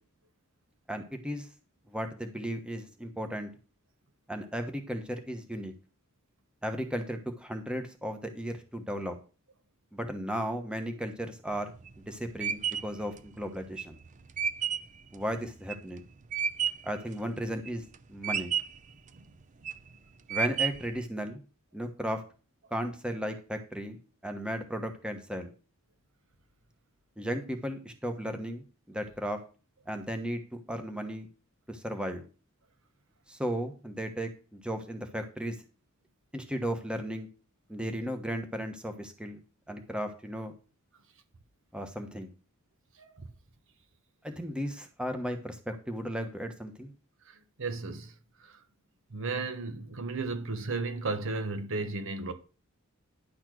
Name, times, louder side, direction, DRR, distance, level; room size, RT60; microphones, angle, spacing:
voice 1, 0.9-1.5 1.9-3.5 4.3-5.7 6.6-9.2 9.9-11.7 12.1-14.0 15.1-16.0 16.8-17.8 18.1-18.5 20.3-21.4 21.7-22.2 22.7-25.5 27.2-29.4 29.9-31.3 31.7-32.3 33.3-35.5 36.3-37.3 37.7-39.4 39.7-40.5 41.7-42.3 44.2-46.9, equal, 5° right, 1.0 m, -35 dB
sound 1, 11.5-17.0 17.4-18.0 18.2-18.9 19.4-19.9 20.3-21.0, right 7 dB, 35° right, 0.5 m, -32 dB
voice 2, 42.9-43.3 47.2-48.6 49.1-52.3, right 3 dB, 65° right, 1.1 m, -35 dB
10.5 x 4.3 x 6.1 m
head